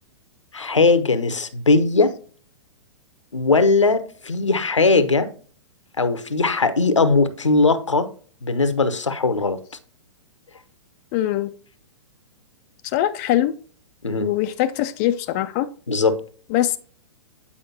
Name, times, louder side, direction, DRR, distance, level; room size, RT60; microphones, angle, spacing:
voice 1, 0.5-2.1 3.3-5.3 6.0-8.1 8.4-9.6 14.0-14.3 15.9-16.2, left 3 dB, 80° left, 0.8 m, -19 dB
voice 2, 11.1-11.5 12.8-13.5 14.2-15.7 16.5-16.8, left 13 dB, 30° left, 0.4 m, -22 dB
8.4 x 4.9 x 2.7 m
figure-of-eight pair, 110°, 15 cm